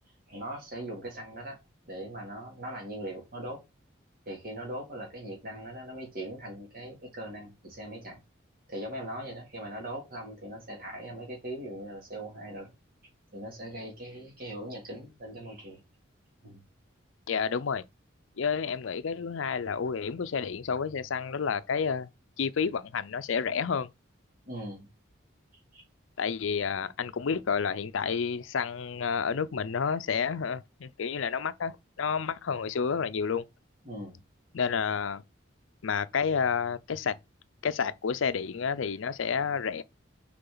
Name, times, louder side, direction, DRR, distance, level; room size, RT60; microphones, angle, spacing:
voice 1, 0.3-1.6 1.9-3.6 4.3-8.2 8.7-12.7 13.3-15.8 16.4-16.6 24.4-24.9 25.7-25.8 33.8-34.2, right 1 dB, 45° right, 2.8 m, -40 dB
voice 2, 17.3-17.8 18.4-22.1 22.4-23.9 26.2-33.4 34.5-35.2 35.8-37.2 37.6-39.8, left 6 dB, 75° left, 0.5 m, -30 dB
6.7 x 5.0 x 3.9 m
head